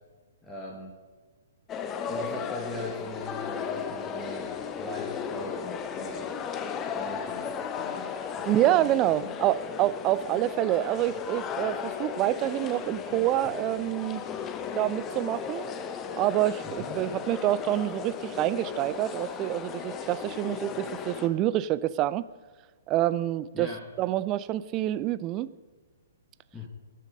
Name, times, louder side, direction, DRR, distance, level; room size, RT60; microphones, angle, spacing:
voice 1, 0.4-0.9 2.1-5.6 5.9-6.3 6.9-9.3 16.6-17.0 23.5-23.9 26.5-26.7, left 1 dB, 5° left, -3 dB, 1.4 m, -40 dB
sound 1, 1.7-21.3, left 7 dB, 20° left, 1.0 m, -35 dB
voice 2, 8.5-14.2 14.8-15.7 16.2-22.3 22.9-23.7 24.0-25.5, right 14 dB, 25° right, 17 dB, 0.4 m, -27 dB
19.0 x 6.5 x 5.3 m, 1.4 s
figure-of-eight pair, 120°, 0 cm